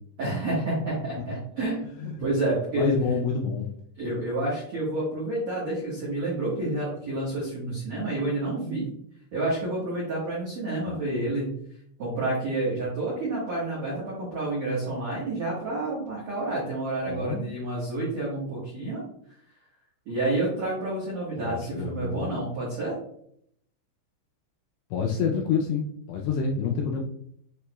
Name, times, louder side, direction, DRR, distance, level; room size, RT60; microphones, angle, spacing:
voice 1, 0.2-2.9 4.0-8.9 9.3-11.5 12.0-19.0 20.0-23.0, right 2 dB, 80° right, -7 dB, 1.5 m, -29 dB
voice 2, 2.7-3.6 10.8-11.1 17.0-17.5 21.4-22.3 24.9-27.0, left 5 dB, 85° left, 0 dB, 2.4 m, -28 dB
7.0 x 3.0 x 2.2 m, 0.68 s
omnidirectional pair, 5.2 m